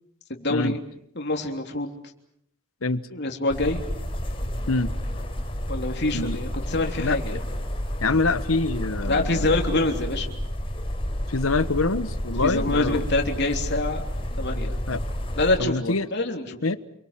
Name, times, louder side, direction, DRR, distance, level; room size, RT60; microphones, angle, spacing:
voice 1, 0.3-0.8 1.2-1.9 3.1-3.8 5.7-7.4 9.0-10.3 12.4-14.0 14.4-14.7 15.4-16.6, left 2 dB, 55° left, 3 dB, 3.4 m, -25 dB
sound 1, 3.5-15.6, equal, 25° left, 4.7 m, -30 dB
voice 2, 8.0-9.5 11.3-13.1 14.9-15.0 15.6-16.1 16.6-16.8, left 3 dB, 85° left, 14 dB, 1.3 m, -25 dB
29.0 x 23.5 x 7.5 m, 0.72 s
head